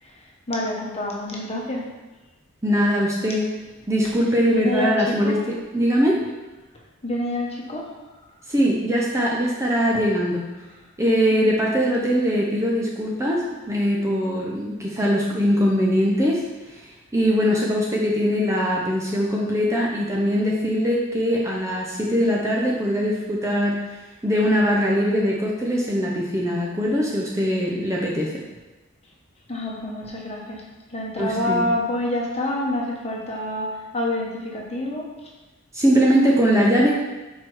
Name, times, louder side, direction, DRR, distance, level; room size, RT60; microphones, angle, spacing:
voice 1, 0.0-1.9 4.5-5.4 7.0-8.0 9.9-10.0 11.3-11.4 29.5-30.6 30.9-35.1, left 1 dB, 30° left, -2 dB, 1.2 m, -27 dB
voice 2, 2.6-3.5 3.9-6.2 8.5-10.5 11.0-16.4 16.7-23.9 24.2-28.4 31.2-31.7 35.7-36.9, equal, 15° right, -3 dB, 0.7 m, -21 dB
6.6 x 4.6 x 4.7 m, 1.1 s
head